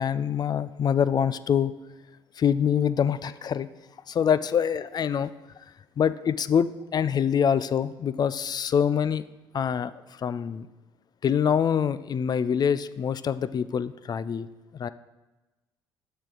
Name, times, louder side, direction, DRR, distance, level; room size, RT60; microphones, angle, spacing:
voice 1, 0.0-1.7 2.4-3.7 4.1-5.3 6.0-9.2 9.5-10.7 11.2-14.5 14.7-14.9, left 8 dB, 35° left, 15 dB, 0.3 m, -25 dB
7.0 x 6.4 x 3.9 m, 1.1 s
hypercardioid pair, 50°, 12 cm